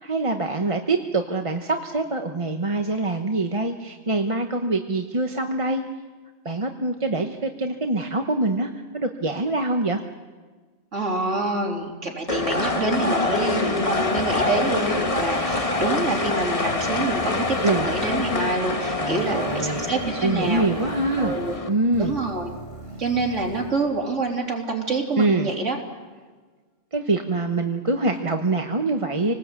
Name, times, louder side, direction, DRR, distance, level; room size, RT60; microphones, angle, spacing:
voice 1, 0.0-5.8 6.4-10.0 17.6-17.9 18.8-19.9 20.2-21.4 21.7-22.2 25.2-25.5 26.9-29.3, right 2 dB, 30° right, 4 dB, 1.1 m, -24 dB
voice 2, 10.9-20.6 21.2-21.5 22.0-22.5 23.0-25.8, right 3 dB, 85° right, 0 dB, 3.7 m, -27 dB
sound 1, 12.3-21.7, left 2 dB, 30° left, 1.5 m, -25 dB
sound 2, 13.9-24.7, right 1 dB, 50° left, 7.5 m, -42 dB
27.0 x 19.5 x 8.3 m, 1.4 s
omnidirectional pair, 1.2 m